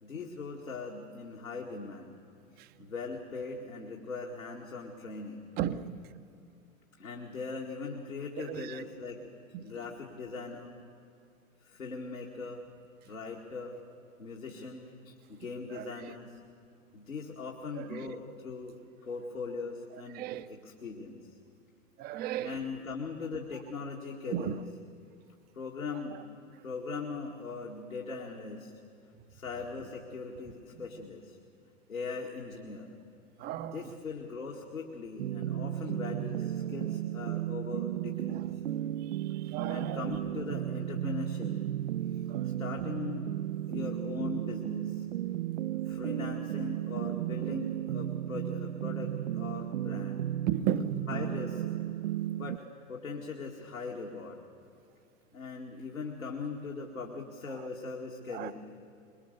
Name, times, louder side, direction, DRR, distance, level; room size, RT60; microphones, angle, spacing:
voice 1, 0.0-2.1 2.8-5.4 7.0-9.2 9.6-10.8 11.6-12.7 13.0-13.8 14.2-16.4 16.9-21.4 22.4-24.6 25.5-26.2 26.6-28.7 29.3-31.4 31.9-32.9 33.6-38.6 39.7-41.5 42.1-43.3 43.7-45.1 45.7-50.3 51.1-51.6 52.4-54.4 55.3-58.5, left 4 dB, 80° left, 2.3 m, -40 dB
voice 2, 5.6-6.0 8.4-8.8 9.5-9.6 15.7-16.1 17.8-18.1 20.1-20.6 22.0-22.6 24.2-24.6 33.4-33.8 38.3-38.4 39.3-40.1 42.3-42.5 50.5-50.9 58.3-58.5, right 10 dB, 25° right, 0.7 m, -35 dB
sound 1, 35.2-52.6, right 12 dB, 65° right, 0.5 m, -34 dB
23.0 x 22.5 x 6.8 m
figure-of-eight pair, 100°, 40 cm